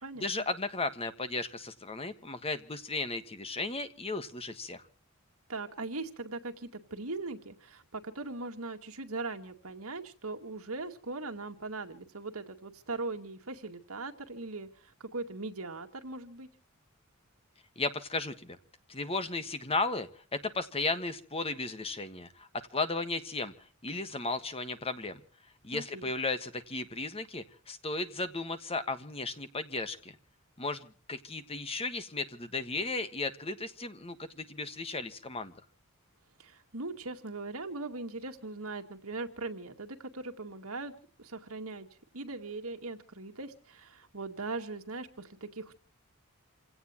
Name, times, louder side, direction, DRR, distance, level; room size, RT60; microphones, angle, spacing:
voice 1, 0.2-4.8 17.8-18.6 18.9-23.5 23.8-25.2 25.6-30.1 30.6-35.5, left 3 dB, 25° left, 10 dB, 1.5 m, -35 dB
voice 2, 5.5-16.5 25.7-26.1 36.4-40.9 41.2-41.9 42.1-45.7, right 3 dB, 80° right, 5 dB, 2.1 m, -40 dB
28.0 x 17.5 x 3.0 m, 0.41 s
head